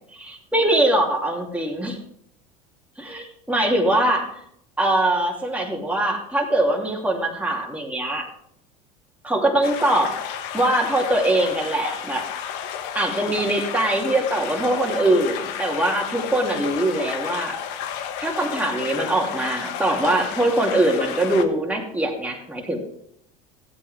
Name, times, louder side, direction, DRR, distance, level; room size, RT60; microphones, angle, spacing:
voice 1, 0.1-2.0 3.0-4.3 4.8-8.2 9.2-10.1 10.5-12.3 12.9-17.6 18.2-22.8, right 1 dB, 5° right, 0 dB, 2.8 m, -22 dB
sound 1, 9.6-21.4, left 9 dB, 65° left, 1.2 m, -32 dB
15.0 x 8.4 x 3.5 m, 0.70 s
hypercardioid pair, 80°, 20 cm